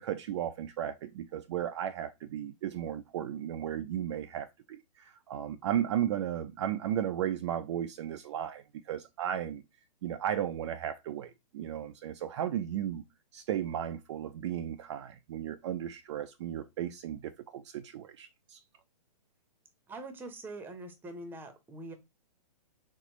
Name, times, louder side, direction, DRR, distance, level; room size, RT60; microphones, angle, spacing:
voice 1, 0.0-9.6 10.0-13.0 13.3-18.6, right 10 dB, 45° right, 0.5 m, -35 dB
voice 2, 19.9-21.9, right 2 dB, 10° right, 0.9 m, -43 dB
4.2 x 4.1 x 3.0 m
hypercardioid pair, 135°, 21 cm